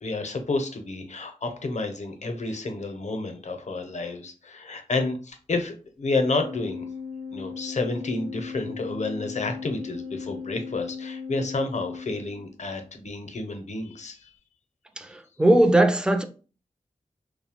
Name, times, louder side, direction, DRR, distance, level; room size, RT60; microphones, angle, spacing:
voice 1, 0.0-6.9 7.3-14.3, left 3 dB, 65° left, 0.6 m, -30 dB
Organ, 6.2-12.8, left 5 dB, 55° right, 0.9 m, -37 dB
voice 2, 15.4-16.2, right 1 dB, 5° right, 0.4 m, -18 dB
2.7 x 2.0 x 2.8 m
wide cardioid pair, 55°, 13 cm